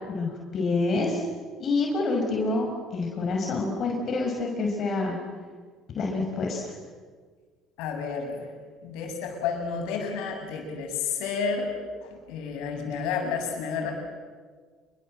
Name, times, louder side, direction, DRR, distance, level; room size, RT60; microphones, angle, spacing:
voice 1, 0.1-1.2 1.6-5.2 5.9-6.7, left 3 dB, 50° left, 1 dB, 6.1 m, -27 dB
voice 2, 7.8-8.4 8.8-11.7 12.3-13.9, left 5 dB, 75° left, 3 dB, 7.1 m, -30 dB
27.5 x 23.5 x 7.9 m, 1.6 s
supercardioid pair, 85°, 0 cm